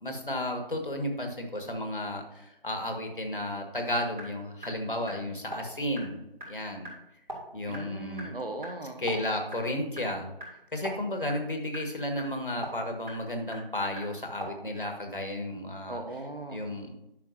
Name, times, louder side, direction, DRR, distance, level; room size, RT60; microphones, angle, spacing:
voice 1, 0.0-6.9 7.5-8.3 9.0-10.3 10.7-16.0 16.5-17.0, left 1 dB, 60° left, 4 dB, 1.7 m, -33 dB
sound 1, 4.2-4.3 4.6-4.7 5.1-5.2 5.5-5.6 5.9-6.0 6.4-6.5 6.8-6.9 7.3-7.4 7.7-7.8 8.2-8.3 8.6-8.7 9.0-9.1 9.5-9.6 9.9-10.0 10.4-10.5 10.8-10.9 11.3-14.5, equal, 55° right, 3.1 m, -39 dB
voice 2, 7.7-9.0 15.9-16.6, right 2 dB, 75° right, 5 dB, 1.5 m, -38 dB
11.0 x 6.3 x 2.7 m, 0.86 s
figure-of-eight pair, 170°, 29 cm